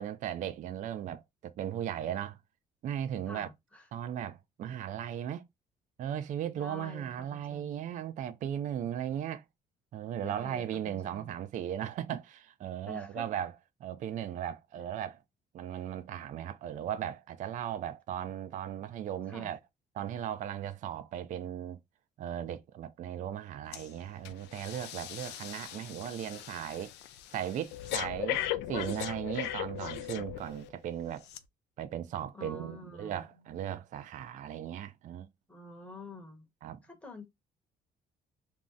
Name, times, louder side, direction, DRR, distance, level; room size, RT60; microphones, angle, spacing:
voice 1, 0.0-2.4 2.8-3.5 3.9-5.4 6.0-9.4 9.9-13.5 13.8-15.2 15.5-19.6 19.9-21.8 22.2-26.9 27.3-28.4 28.7-31.3 31.8-35.3 36.6-36.8, right 10 dB, 50° right, 0.4 m, -37 dB
voice 2, 3.3-3.9 6.6-7.8 10.2-11.4 12.9-13.4 14.7-14.8 19.3-19.5 32.3-33.6 35.5-36.5 36.8-37.2, left 2 dB, 5° left, 0.8 m, -48 dB
Breathing, 23.7-23.9 24.2-30.7 31.3-31.4, left 12 dB, 85° left, 0.4 m, -38 dB
2.6 x 2.0 x 3.5 m
cardioid pair, 110°, 17 cm